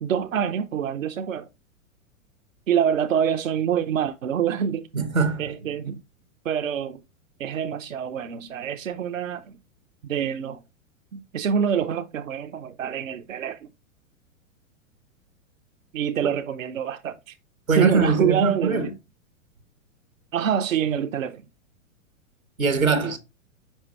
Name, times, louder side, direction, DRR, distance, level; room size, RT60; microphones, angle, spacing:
voice 1, 0.0-1.5 2.7-4.9 5.4-6.0 6.4-7.0 7.4-9.5 10.0-10.6 11.1-13.7 15.9-17.4 17.7-18.9 20.3-21.4, right 8 dB, 70° right, 0.8 m, -26 dB
voice 2, 4.9-5.4 17.7-18.9 22.6-23.2, right 4 dB, 90° right, 1.5 m, -22 dB
7.2 x 5.3 x 3.0 m
figure-of-eight pair, 100°, 40 cm